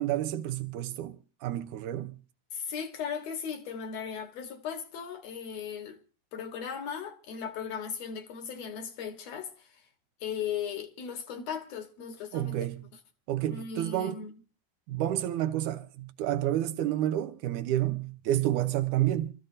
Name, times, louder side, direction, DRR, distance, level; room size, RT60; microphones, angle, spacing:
voice 1, 0.0-2.2 12.3-12.8 13.3-14.3 14.9-19.3, right 13 dB, 80° right, 1.9 m, -30 dB
voice 2, 2.5-6.0 6.3-9.9 10.2-12.7 13.5-14.3, left 7 dB, 55° left, 2.0 m, -37 dB
27.5 x 14.5 x 2.7 m
omnidirectional pair, 4.7 m